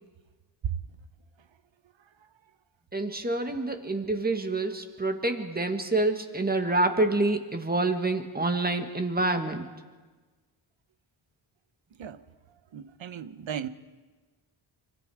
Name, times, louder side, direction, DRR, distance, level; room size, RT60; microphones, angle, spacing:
voice 1, 2.9-9.7, right 2 dB, 20° right, 1.9 m, -27 dB
voice 2, 12.7-13.7, right 8 dB, 70° right, 1.1 m, -34 dB
26.5 x 25.0 x 5.0 m
wide cardioid pair, 135°, 48 cm